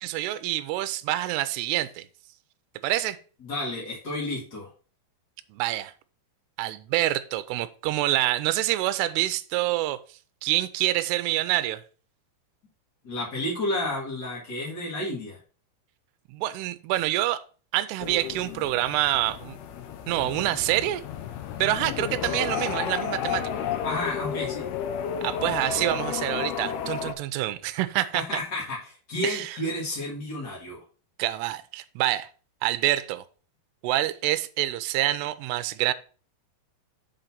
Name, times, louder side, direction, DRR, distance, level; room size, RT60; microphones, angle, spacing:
voice 1, 0.0-2.1 2.8-3.2 5.5-5.9 6.6-10.0 10.4-11.8 16.3-17.4 17.7-19.6 20.1-21.0 21.6-23.4 25.2-28.2 29.2-29.6 31.2-32.3 32.6-33.2 33.8-35.9, right 15 dB, 85° right, 11 dB, 2.5 m, -26 dB
voice 2, 3.4-4.7 13.0-15.4 23.8-24.7 28.1-30.8, left 1 dB, 50° left, -5 dB, 1.2 m, -31 dB
sound 1, 18.0-27.1, left 8 dB, 80° left, 2.5 m, -32 dB
7.0 x 3.9 x 5.7 m, 0.38 s
omnidirectional pair, 4.9 m